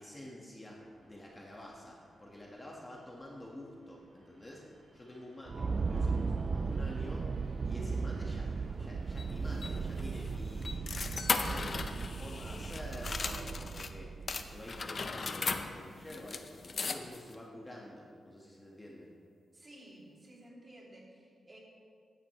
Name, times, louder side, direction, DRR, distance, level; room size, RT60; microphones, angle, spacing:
voice 1, 0.0-4.6 4.9-7.3 7.6-8.5 8.8-10.9 11.3-14.1 14.4-19.1, left 1 dB, 15° left, -3 dB, 1.7 m, -48 dB
sound 1, 0.7-12.0, right 1 dB, 80° right, 3.6 m, -60 dB
sound 2, 5.5-15.1, right 4 dB, 45° right, 0.4 m, -36 dB
sound 3, 9.2-13.9 14.3-17.3, left 4 dB, 45° left, 0.7 m, -38 dB
voice 2, 19.5-21.6, right 1 dB, 30° right, -4 dB, 3.1 m, -54 dB
16.0 x 11.5 x 3.3 m, 2.1 s
cardioid pair, 95°, 0 cm